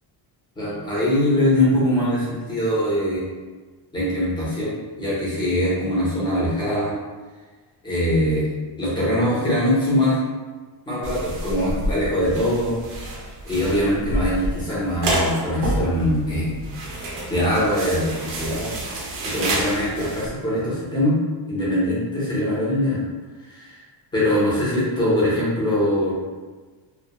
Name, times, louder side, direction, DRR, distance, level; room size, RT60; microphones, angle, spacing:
voice 1, 0.6-3.2 3.9-6.9 7.8-8.5 8.8-10.2 10.9-12.7 13.4-16.6 17.3-18.7 19.2-21.2 21.5-23.0 23.4-23.8 24.1-26.1, left 1 dB, 10° left, -9 dB, 0.6 m, -22 dB
sound 1, 11.0-20.3, right 1 dB, 45° right, 0.5 m, -28 dB
2.3 x 2.1 x 2.8 m, 1.3 s
cardioid pair, 180°, 46 cm